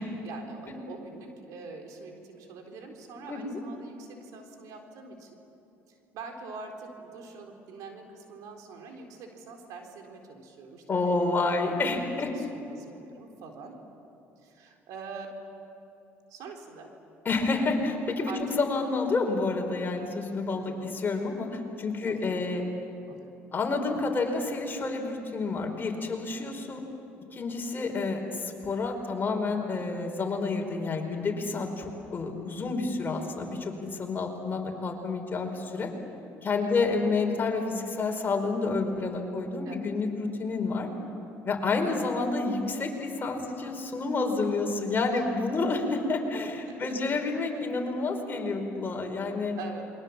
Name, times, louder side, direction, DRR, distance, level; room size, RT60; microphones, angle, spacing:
voice 1, 0.2-5.3 5.9-13.8 14.4-15.3 16.3-16.9 18.3-18.4 20.5-20.9 22.1-22.7 23.1-23.3 36.6-36.8 39.7-39.9 41.5-41.8 45.1-45.3 46.7-47.0 49.6-49.8, right 4 dB, 70° right, 3 dB, 4.0 m, -45 dB
voice 2, 3.3-3.6 10.9-12.3 17.2-22.6 23.5-26.8 27.3-35.9 36.4-40.9 41.4-49.6, left 3 dB, 35° left, 3 dB, 4.7 m, -29 dB
28.5 x 23.0 x 7.4 m, 2.9 s
supercardioid pair, 75°, 6 cm